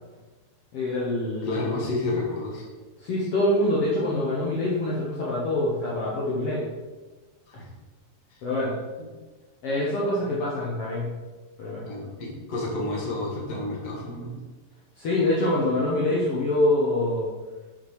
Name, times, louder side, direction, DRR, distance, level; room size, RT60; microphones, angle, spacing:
voice 1, 0.7-1.8 3.0-6.6 8.4-8.7 9.6-11.1 11.6-11.8 15.0-17.3, left 1 dB, 75° left, -6 dB, 1.3 m, -25 dB
voice 2, 1.4-2.6 7.5-7.7 8.3-8.4 9.0-9.1 11.8-14.3, left 2 dB, 40° left, -3 dB, 1.4 m, -30 dB
6.8 x 6.0 x 4.8 m, 1.3 s
omnidirectional pair, 4.5 m